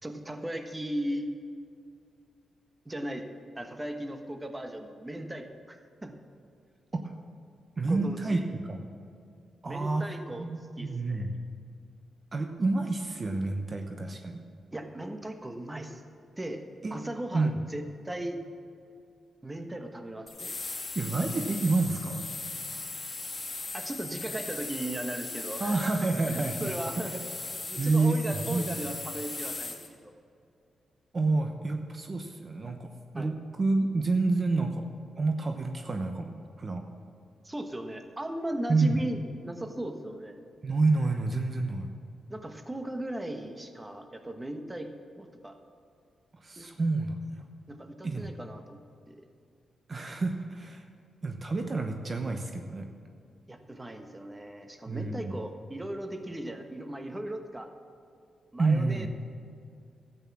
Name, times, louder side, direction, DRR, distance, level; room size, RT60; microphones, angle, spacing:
voice 1, 0.0-1.3 2.8-3.3 3.6-6.1 7.9-8.4 9.6-10.4 10.8-11.3 14.7-16.0 16.4-16.6 16.9-18.4 19.4-20.5 23.7-27.2 27.5-30.1 33.1-33.3 37.4-40.4 42.3-45.6 46.6-46.7 47.7-49.3 53.5-57.7 58.5-59.1, right 1 dB, 15° right, 6 dB, 1.1 m, -37 dB
voice 2, 7.8-8.4 8.7-8.8 9.6-11.3 12.3-14.4 16.8-17.0 17.3-17.5 20.9-22.2 25.6-26.7 27.8-28.6 31.1-32.9 33.1-33.3 33.6-34.9 35.2-36.3 36.6-36.8 38.7-39.0 40.6-41.9 46.4-47.4 48.0-48.3 49.9-50.8 51.2-52.9 54.9-55.4 58.6-59.1, right 3 dB, 40° right, 5 dB, 0.9 m, -28 dB
sound 1, 20.3-29.9, left 3 dB, 25° left, 1.9 m, -38 dB
13.0 x 8.2 x 7.3 m, 2.4 s
cardioid pair, 80°, 0 cm